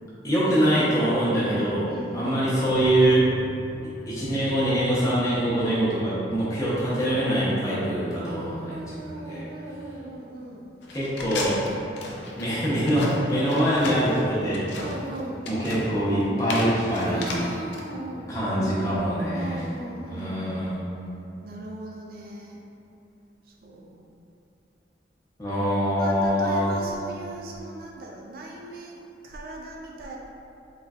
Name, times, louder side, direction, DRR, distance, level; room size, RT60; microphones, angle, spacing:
voice 1, 0.2-3.3 4.1-9.5 10.9-11.6 12.3-14.7 15.5-17.3 18.3-19.6 20.1-20.9 25.4-26.7, right 1 dB, 20° left, -9 dB, 0.8 m, -24 dB
voice 2, 1.8-2.6 8.2-10.8 14.8-15.5 17.1-20.6 21.4-22.6 23.5-24.1 26.0-30.2, right 1 dB, 50° right, -1 dB, 0.3 m, -39 dB
sound 1, 2.7-8.7, right 3 dB, 55° left, 0.8 m, -42 dB
sound 2, 10.8-17.8, left 2 dB, 75° left, 0.5 m, -35 dB
3.8 x 3.1 x 2.4 m, 2.7 s
head